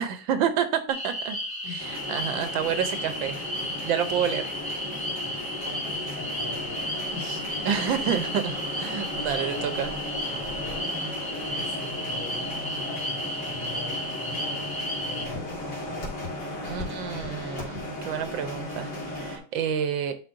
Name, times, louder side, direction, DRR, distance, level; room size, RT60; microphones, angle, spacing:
voice 1, 0.0-1.4 2.1-3.4 3.6-4.5 7.2-7.4 7.7-9.9 16.6-20.1, right 8 dB, 80° right, 9 dB, 1.5 m, -29 dB
sound 1, 0.9-15.3, equal, 10° left, 1.3 m, -33 dB
sound 2, 1.8-19.4, left 1 dB, 60° left, 2.7 m, -36 dB
voice 2, 5.6-7.4 9.4-9.7 10.3-10.9 11.5-16.1, left 2 dB, 85° left, -2 dB, 3.8 m, -42 dB
10.5 x 4.0 x 2.6 m, 0.39 s
omnidirectional pair, 2.1 m